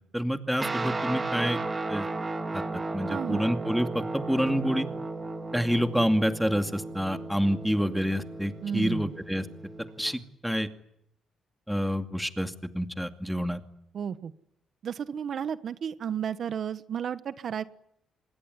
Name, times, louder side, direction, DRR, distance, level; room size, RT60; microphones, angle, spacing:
voice 1, 0.1-1.6 1.9-2.1 2.5-2.6 2.9-4.9 5.5-9.5 10.0-10.7 11.7-13.6, equal, ahead, 7 dB, 2.4 m, -28 dB
Guitar, 0.6-10.2, right 3 dB, 25° right, 3.1 m, -35 dB
voice 2, 3.1-3.4 8.6-9.1 13.9-14.3 14.8-17.6, right 8 dB, 55° right, 12 dB, 1.2 m, -32 dB
25.5 x 21.5 x 9.8 m, 0.78 s
cardioid pair, 90°, 0 cm